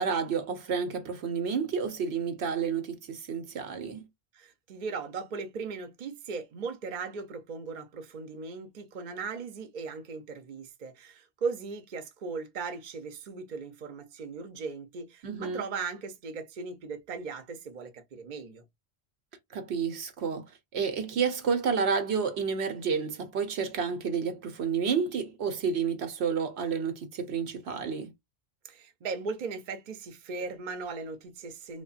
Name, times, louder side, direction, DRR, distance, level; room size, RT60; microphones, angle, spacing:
voice 1, 0.0-4.1 15.2-15.6 19.5-20.4 20.7-28.1, right 6 dB, 75° right, 1.0 m, -30 dB
voice 2, 4.3-18.6 28.6-31.8, right 4 dB, 50° right, 0.7 m, -38 dB
3.4 x 2.2 x 2.4 m
omnidirectional pair, 1.1 m